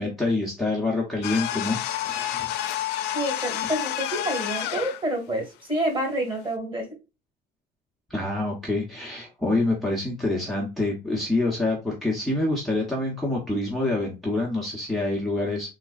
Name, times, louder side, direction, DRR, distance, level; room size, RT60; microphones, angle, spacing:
voice 1, 0.0-2.5 8.1-15.7, left 2 dB, ahead, -3 dB, 0.9 m, -26 dB
sound 1, 1.2-5.0, left 12 dB, 85° left, 0.4 m, -29 dB
voice 2, 3.1-6.9, right 1 dB, 30° right, 3 dB, 1.9 m, -28 dB
3.6 x 3.0 x 2.4 m, 0.28 s
cardioid pair, 110°, 17 cm